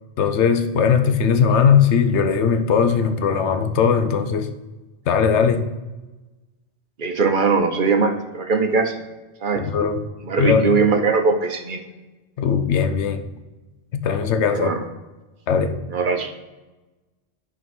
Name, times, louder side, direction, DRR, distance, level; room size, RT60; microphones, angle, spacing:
voice 1, 0.2-4.5 5.1-5.7 9.6-10.1 10.4-10.8 12.4-13.2 13.9-14.7 15.5-15.8, left 6 dB, 85° left, 9 dB, 1.0 m, -19 dB
voice 2, 7.0-9.0 9.4-9.6 10.2-11.8 14.5-14.8 15.9-16.3, right 4 dB, 50° right, 6 dB, 0.8 m, -20 dB
6.8 x 4.1 x 5.9 m, 1.2 s
omnidirectional pair, 1.1 m